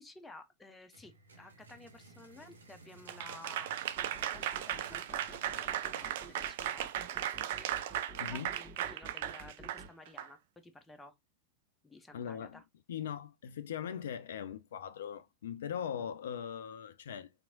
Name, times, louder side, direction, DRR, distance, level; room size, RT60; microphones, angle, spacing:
voice 1, 0.0-3.7 4.1-7.7 8.3-11.1 11.8-12.6, left 2 dB, 10° left, 0.5 m, -54 dB
sound 1, 0.9-8.7, right 2 dB, 70° right, 0.8 m, -58 dB
Applause / Crowd, 3.1-10.3, right 11 dB, 55° right, 0.3 m, -37 dB
sound 2, 4.0-9.9, right 2 dB, 10° right, 0.9 m, -52 dB
voice 2, 12.1-12.6 12.9-17.3, left 8 dB, 60° left, 0.3 m, -40 dB
3.5 x 2.9 x 2.6 m
figure-of-eight pair, 90°, 0 cm